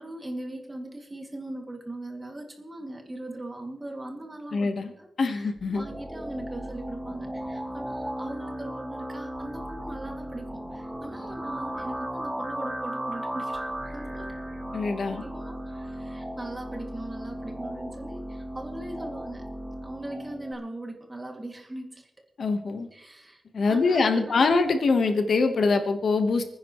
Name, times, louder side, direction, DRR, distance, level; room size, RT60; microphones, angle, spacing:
voice 1, 0.0-14.3 15.1-22.1 22.9-24.6, right 1 dB, 20° right, 2 dB, 2.4 m, -40 dB
voice 2, 4.5-4.9 5.2-5.8 14.7-15.2 22.4-22.9 23.5-26.4, left 4 dB, 80° left, 6 dB, 1.3 m, -24 dB
sound 1, 5.6-20.5, right 1 dB, 5° right, 1.3 m, -36 dB
29.5 x 10.0 x 3.1 m, 0.88 s
wide cardioid pair, 115°, 0 cm